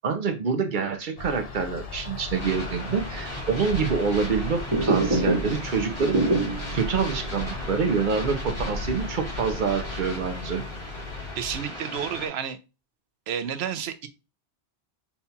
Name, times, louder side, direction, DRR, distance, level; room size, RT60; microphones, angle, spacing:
voice 1, 0.0-6.3 6.7-10.6, right 5 dB, 55° right, 6 dB, 0.7 m, -26 dB
sound 1, 1.2-11.6, left 3 dB, 40° left, 0.7 m, -36 dB
sound 2, 2.3-12.3, equal, 60° left, 2.4 m, -38 dB
sound 3, 4.6-6.7 7.1-7.2 7.6-7.7 8.2-9.7 10.0-10.6, right 2 dB, 25° right, 0.7 m, -26 dB
voice 2, 11.4-12.6 13.3-14.1, right 8 dB, 85° right, 10 dB, 0.9 m, -30 dB
5.7 x 2.3 x 2.7 m, 0.28 s
omnidirectional pair, 1.1 m